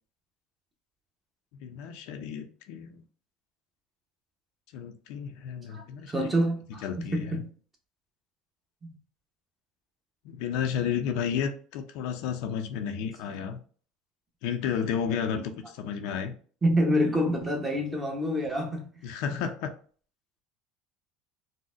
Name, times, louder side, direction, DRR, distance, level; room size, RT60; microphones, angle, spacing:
voice 1, 1.6-3.0 4.7-6.3 6.8-7.4 10.2-13.6 14.4-16.3 19.0-19.7, left 7 dB, 70° left, 0.4 m, -32 dB
voice 2, 5.7-7.5 8.8-9.0 13.4-13.5 16.6-18.9, equal, 15° right, 0.8 m, -27 dB
3.9 x 2.1 x 2.5 m
cardioid pair, 130°, 0 cm